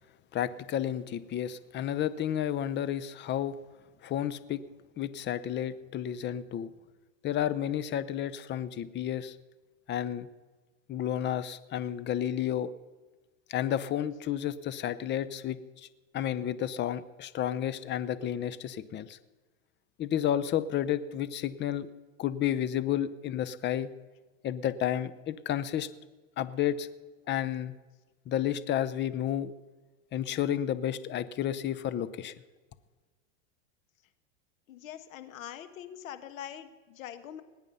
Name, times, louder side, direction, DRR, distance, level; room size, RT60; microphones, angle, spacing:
voice 1, 0.3-3.6 4.0-4.6 5.0-6.7 7.2-9.3 9.9-10.3 10.9-12.7 13.5-15.6 16.1-19.2 20.0-21.9 22.2-23.9 24.4-25.9 26.4-26.9 27.3-27.7 28.3-29.5 30.1-32.3, left 10 dB, 25° left, 15 dB, 0.7 m, -31 dB
voice 2, 34.7-37.4, left 10 dB, 80° left, 10 dB, 1.4 m, -43 dB
20.0 x 8.9 x 5.5 m, 1.3 s
hypercardioid pair, 115°, 40 cm